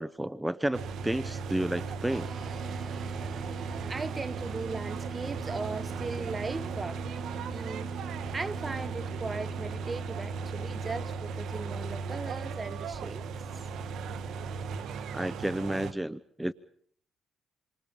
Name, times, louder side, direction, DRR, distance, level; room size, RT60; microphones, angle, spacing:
voice 1, 0.0-2.3 15.1-16.5, right 1 dB, 5° right, 0.9 m, -31 dB
sound 1, 0.7-15.9, right 5 dB, 75° right, 1.7 m, -36 dB
sound 2, 2.1-11.8, right 5 dB, 50° right, 3.5 m, -44 dB
voice 2, 3.9-7.0 7.5-7.9 8.3-13.3, right 3 dB, 30° right, 1.3 m, -38 dB
28.5 x 24.5 x 5.5 m
cardioid pair, 90°, 0 cm